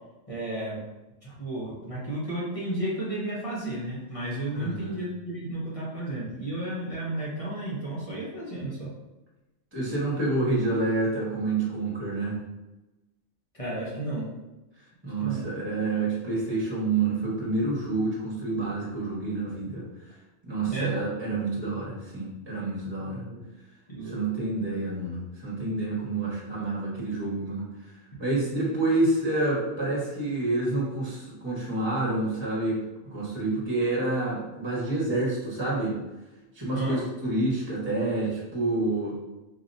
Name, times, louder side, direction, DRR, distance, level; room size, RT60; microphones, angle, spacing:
voice 1, 0.3-0.8 1.2-8.9 13.5-14.3 15.0-15.5 20.7-20.9 23.3-23.4 23.9-24.2 36.7-37.0, right 1 dB, 30° left, -7 dB, 1.1 m, -32 dB
voice 2, 4.5-4.9 9.7-12.4 15.0-19.8 20.4-23.2 24.0-27.7 28.2-32.8 33.1-36.0 36.5-39.2, right 2 dB, 20° right, -6 dB, 1.4 m, -28 dB
4.6 x 2.8 x 2.6 m, 1.1 s
omnidirectional pair, 1.3 m